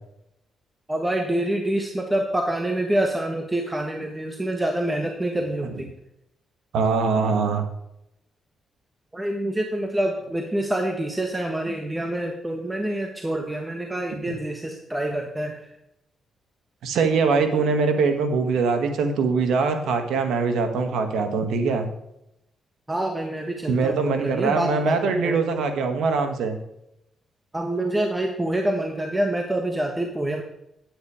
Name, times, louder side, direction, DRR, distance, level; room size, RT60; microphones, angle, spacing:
voice 1, 0.9-5.9 9.1-15.6 22.9-25.4 27.5-30.4, right 1 dB, 15° right, 3 dB, 1.3 m, -26 dB
voice 2, 6.7-7.6 14.3-14.4 16.8-21.9 23.7-26.6, right 4 dB, 80° right, 7 dB, 1.5 m, -22 dB
9.8 x 8.6 x 4.9 m, 0.83 s
cardioid pair, 75°, 0 cm